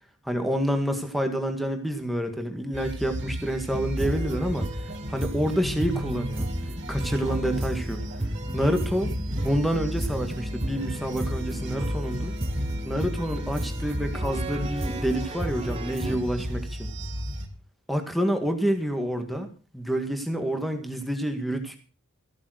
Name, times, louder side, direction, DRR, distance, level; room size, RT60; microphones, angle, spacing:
voice 1, 0.2-6.5 6.9-8.0 8.5-9.1 9.4-12.3 12.8-16.9 17.9-19.5 19.7-21.8, equal, ahead, 5 dB, 1.8 m, -28 dB
sound 1, 2.7-17.5, equal, 55° right, 2.7 m, -33 dB
sound 2, 4.0-16.2, right 1 dB, 25° right, 1.2 m, -34 dB
15.0 x 8.7 x 6.4 m, 0.36 s
head